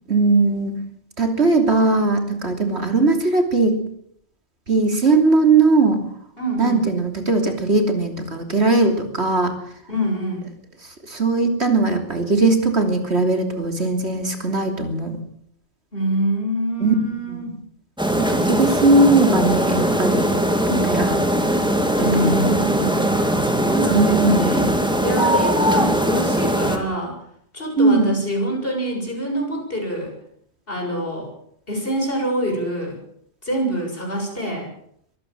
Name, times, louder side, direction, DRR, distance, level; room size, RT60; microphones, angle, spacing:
voice 1, 0.1-0.7 1.2-3.8 4.7-6.0 6.6-9.5 11.1-15.2 16.8-17.5 18.2-20.3 20.7-21.2 22.0-22.5 23.9-24.7 25.3-25.4 27.8-28.1, right 3 dB, 60° right, 5 dB, 3.4 m, -19 dB
voice 2, 6.4-6.8 9.9-10.5 15.9-17.6 22.0-24.7 25.0-27.2 27.5-30.1 30.7-31.3 31.7-33.0 33.4-34.7, right 1 dB, 50° left, 1 dB, 7.4 m, -25 dB
sound 1, 18.0-26.8, equal, 5° right, 2.5 m, -20 dB
23.5 x 15.0 x 7.4 m, 0.68 s
omnidirectional pair, 1.2 m